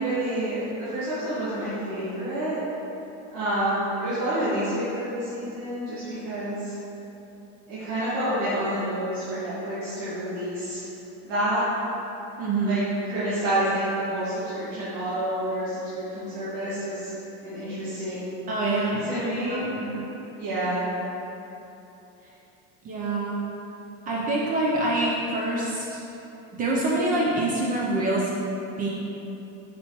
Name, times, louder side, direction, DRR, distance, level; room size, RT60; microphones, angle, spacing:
voice 1, 0.0-2.6 3.3-6.7 7.7-10.8 11.2-11.6 12.6-17.1 17.4-18.3 18.7-19.7 20.3-20.9, right 1 dB, 80° right, -13 dB, 1.5 m, -28 dB
voice 2, 12.4-12.8 18.5-20.0 22.8-23.4 24.1-26.0 26.6-28.3 28.8-28.9, right 2 dB, 25° right, -4 dB, 0.3 m, -26 dB
4.5 x 4.2 x 2.8 m, 3.0 s
cardioid pair, 155°, 35 cm